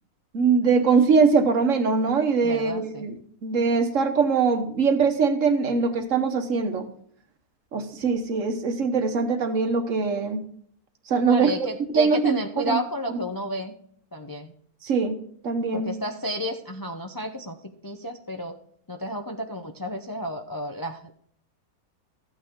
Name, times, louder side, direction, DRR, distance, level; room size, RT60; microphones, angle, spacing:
voice 1, 0.3-3.1 3.4-6.9 7.7-10.4 11.1-11.5 11.9-12.8 14.8-15.2 15.4-15.9, right 5 dB, 55° right, 7 dB, 1.4 m, -22 dB
voice 2, 2.4-3.1 11.3-13.7 14.1-14.5 15.7-17.6 17.8-18.6 18.9-21.1, equal, 25° left, 4 dB, 0.4 m, -31 dB
13.5 x 9.1 x 3.7 m, 0.63 s
omnidirectional pair, 1.6 m